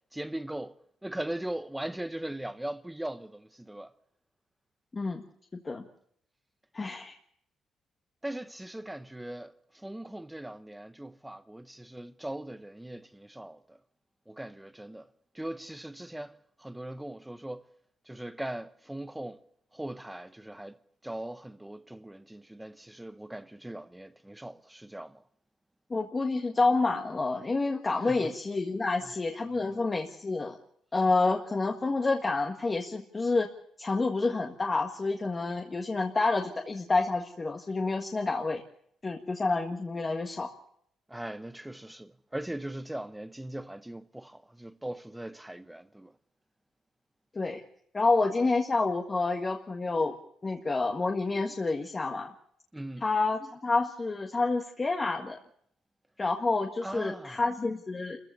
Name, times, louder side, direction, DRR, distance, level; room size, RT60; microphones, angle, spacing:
voice 1, 0.1-3.9 8.2-13.8 14.3-15.1 15.3-17.7 18.1-19.4 19.7-25.2 28.0-28.2 41.1-46.1 52.7-53.0 56.8-57.4, right 1 dB, 10° right, 1.0 m, -40 dB
voice 2, 6.7-7.1 25.9-30.6 30.9-33.5 33.8-38.6 39.0-40.5 47.3-47.6 47.9-50.1 50.4-52.3 53.0-55.4 56.2-58.2, left 3 dB, 30° left, 1.7 m, -28 dB
27.5 x 15.0 x 7.0 m
cardioid pair, 90°, 0 cm